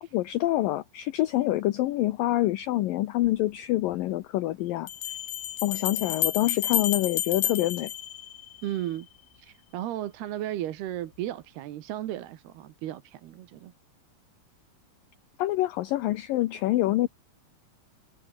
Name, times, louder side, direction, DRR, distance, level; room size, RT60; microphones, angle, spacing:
voice 1, 0.1-4.9 5.6-7.9 15.4-17.1, left 16 dB, 70° left, 2.4 m, -26 dB
Bell, 3.2-3.3 4.9-8.8, left 13 dB, 90° left, 3.8 m, -30 dB
voice 2, 8.6-9.1 9.4-13.7, right 13 dB, 85° right, 3.5 m, -35 dB
omnidirectional pair, 4.5 m